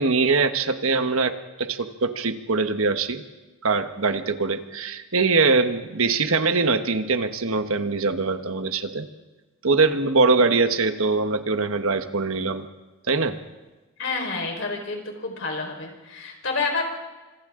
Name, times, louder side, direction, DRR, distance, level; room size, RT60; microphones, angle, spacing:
voice 1, 0.0-3.2 3.6-9.1 9.6-12.6 13.1-13.4, right 4 dB, 80° right, 8 dB, 1.2 m, -22 dB
voice 2, 14.0-16.8, left 4 dB, 60° left, 2 dB, 4.7 m, -29 dB
27.5 x 26.0 x 3.8 m, 1.2 s
head